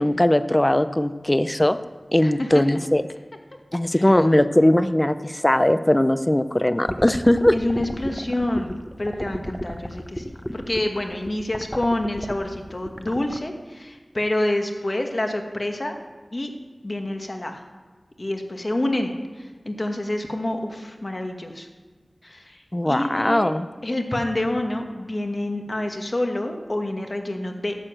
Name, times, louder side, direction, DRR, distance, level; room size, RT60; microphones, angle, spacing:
voice 1, 0.0-1.8 2.1-3.0 3.7-7.5 22.7-23.7, left 1 dB, 25° left, 12 dB, 0.6 m, -19 dB
voice 2, 2.2-2.8 3.9-4.2 7.5-15.9 16.3-16.5 16.8-17.6 18.2-21.7 22.2-23.5 23.8-27.7, left 1 dB, 45° left, 4 dB, 1.5 m, -27 dB
sound 1, 6.9-13.4, equal, 5° left, 0.9 m, -32 dB
11.0 x 6.9 x 7.6 m, 1.3 s
wide cardioid pair, 40°, 0 cm